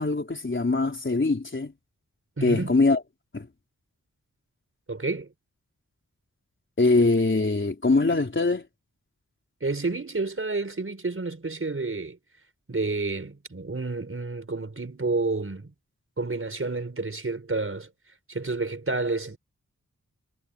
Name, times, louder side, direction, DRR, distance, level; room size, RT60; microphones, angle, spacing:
voice 1, 0.0-1.7 2.4-3.0 3.3-3.5 6.8-8.6, left 3 dB, 40° left, 4.1 m, -22 dB
voice 2, 2.4-2.7 4.9-5.3 9.6-12.2 12.7-15.7 16.2-17.9 18.3-19.4, right 3 dB, 45° right, 5.0 m, -30 dB
wide cardioid pair, 75°, 31 cm